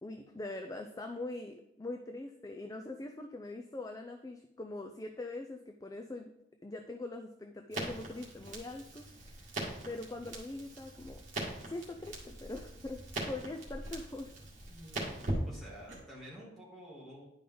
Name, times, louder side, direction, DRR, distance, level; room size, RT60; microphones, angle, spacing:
voice 1, 0.0-6.3 6.6-9.5 9.8-11.2 11.7-13.0 13.3-14.3, left 2 dB, 20° left, 4 dB, 0.4 m, -42 dB
Crackle, 7.7-16.0, right 1 dB, 40° right, 2.0 m, -41 dB
voice 2, 14.7-17.3, equal, ahead, -7 dB, 2.7 m, -50 dB
10.0 x 5.0 x 3.9 m, 0.81 s
head